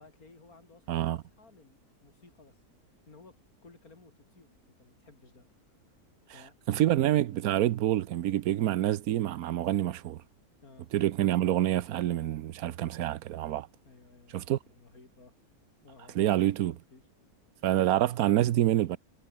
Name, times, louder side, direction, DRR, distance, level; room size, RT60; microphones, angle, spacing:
voice 1, 0.0-2.6 3.1-3.4 3.6-6.0 6.3-6.5 10.6-10.9 13.9-15.3 15.8-17.0, left 3 dB, 70° left, 4.0 m, -57 dB
voice 2, 6.7-10.2 10.9-13.7 14.3-14.6 16.1-16.8 17.6-19.0, right 13 dB, 75° right, 1.2 m, -27 dB
omnidirectional pair, 1.6 m